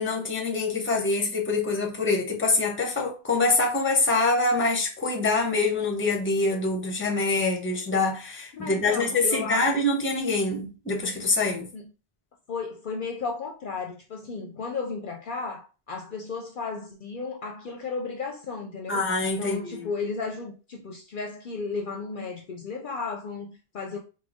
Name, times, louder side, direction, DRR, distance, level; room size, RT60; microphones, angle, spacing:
voice 1, 0.0-11.7 18.9-19.9, left 3 dB, 15° left, 0.6 m, -25 dB
voice 2, 8.5-9.7 11.7-11.9 12.5-19.0 19.4-24.0, left 4 dB, 60° left, 0.6 m, -34 dB
3.8 x 2.2 x 3.5 m
omnidirectional pair, 1.1 m